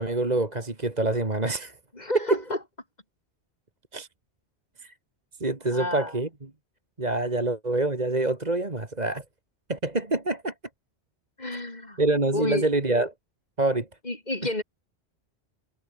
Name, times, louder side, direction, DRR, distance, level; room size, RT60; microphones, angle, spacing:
voice 1, 0.0-1.8 2.1-2.4 3.9-4.1 4.8-4.9 5.4-6.5 7.0-9.2 9.7-10.5 11.5-11.6 12.0-13.1 13.6-13.9, right 2 dB, 40° right, 2.5 m, -26 dB
voice 2, 1.9-2.6 5.7-6.1 11.4-12.0 12.3-12.7 14.0-14.6, left 1 dB, 40° left, 3.0 m, -30 dB
omnidirectional pair, 1.1 m